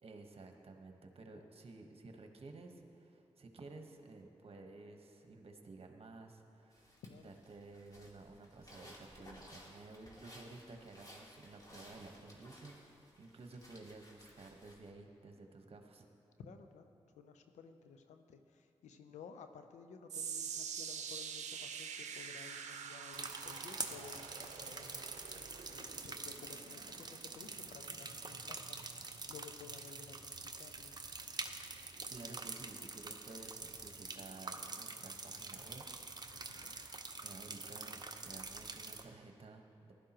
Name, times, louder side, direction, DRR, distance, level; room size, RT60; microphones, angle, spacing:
voice 1, 0.0-7.0 7.2-16.1 32.1-35.8 36.1-36.9 37.2-39.9, right 3 dB, 55° right, 4 dB, 1.2 m, -54 dB
sound 1, 6.7-14.9, equal, 30° left, 2.6 m, -58 dB
voice 2, 7.0-7.3 16.4-16.9 17.2-25.4 25.7-30.9 36.3-36.7, left 6 dB, 85° left, 7 dB, 0.7 m, -55 dB
sound 2, 20.1-32.4 32.7-33.1 33.7-33.8, right 7 dB, 80° right, 0.7 m, -47 dB
sound 3, 23.1-39.0, right 3 dB, 35° right, 0.9 m, -46 dB
15.0 x 12.0 x 3.0 m, 2.6 s
supercardioid pair, 40°, 12 cm